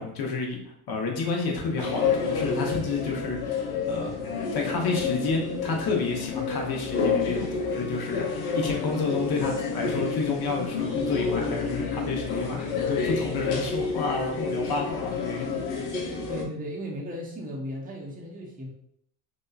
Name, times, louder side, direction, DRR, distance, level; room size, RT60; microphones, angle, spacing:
voice 1, 0.0-4.2 4.5-15.9, left 4 dB, 50° left, 1 dB, 0.9 m, -30 dB
sound 1, 1.8-16.4, left 5 dB, 90° left, 0.6 m, -29 dB
voice 2, 16.3-18.7, equal, 15° right, -3 dB, 0.8 m, -36 dB
2.9 x 2.2 x 2.3 m, 0.71 s
hypercardioid pair, 65°, 50 cm